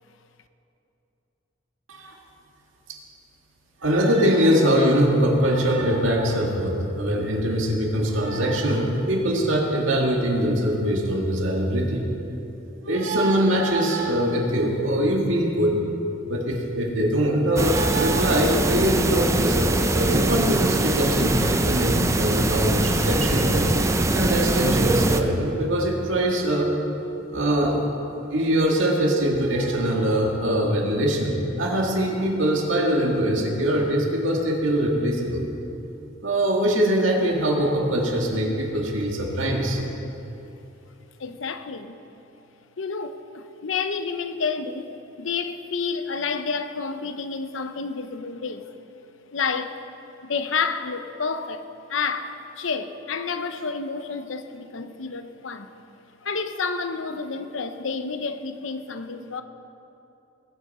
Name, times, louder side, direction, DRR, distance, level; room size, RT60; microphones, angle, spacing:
voice 1, 3.8-12.0 12.9-15.8 16.3-23.7 24.1-26.7 27.3-27.8 28.3-35.4 36.2-39.8, right 1 dB, 90° right, 2.0 m, -22 dB
sound 1, 17.6-25.2, right 2 dB, 15° right, 0.5 m, -22 dB
voice 2, 41.2-42.0 42.8-48.7 49.3-49.8 50.2-51.6 51.9-55.7 56.2-59.4, left 5 dB, 80° left, 0.7 m, -29 dB
20.5 x 9.2 x 4.2 m
head